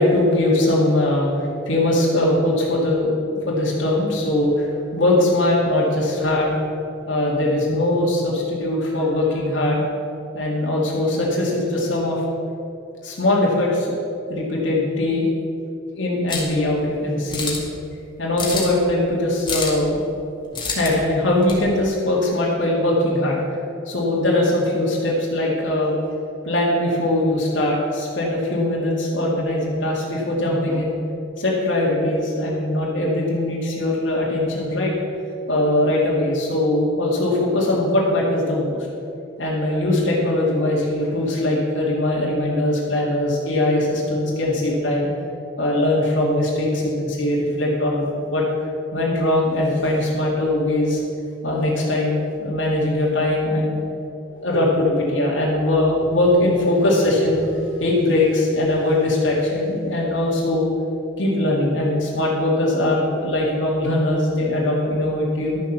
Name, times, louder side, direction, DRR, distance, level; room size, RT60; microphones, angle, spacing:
voice 1, 0.0-4.7 4.9-6.6 7.1-9.8 10.3-12.2 13.0-13.9 14.3-15.3 15.9-17.6 18.2-20.1 20.8-23.4 23.9-25.9 26.4-31.0 31.4-34.9 35.5-38.8 39.4-45.1 45.6-48.4 48.9-51.0 51.4-53.8 54.4-60.7 61.2-65.6, left 1 dB, 70° left, -4 dB, 2.3 m, -21 dB
sound 1, 16.3-16.6 17.3-17.7 18.4-18.8 19.5-19.8 20.5-20.9 21.4-21.6, left 4 dB, 25° left, 2.1 m, -27 dB
12.0 x 7.3 x 6.8 m, 2.7 s
head